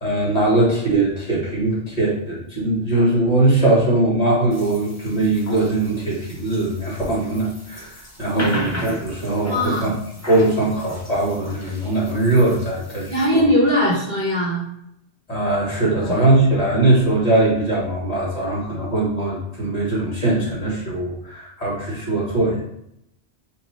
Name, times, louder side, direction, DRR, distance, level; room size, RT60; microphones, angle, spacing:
voice 1, 0.0-7.9 8.2-9.9 10.2-13.4 15.3-22.6, right 2 dB, 40° left, -6 dB, 1.5 m, -20 dB
sound 1, 4.5-13.2, left 1 dB, 15° left, 0.7 m, -36 dB
voice 2, 8.2-8.6 9.4-9.9 13.1-14.6 16.0-16.1, equal, 45° right, -5 dB, 1.2 m, -20 dB
3.1 x 3.0 x 4.1 m, 0.79 s
omnidirectional pair, 1.1 m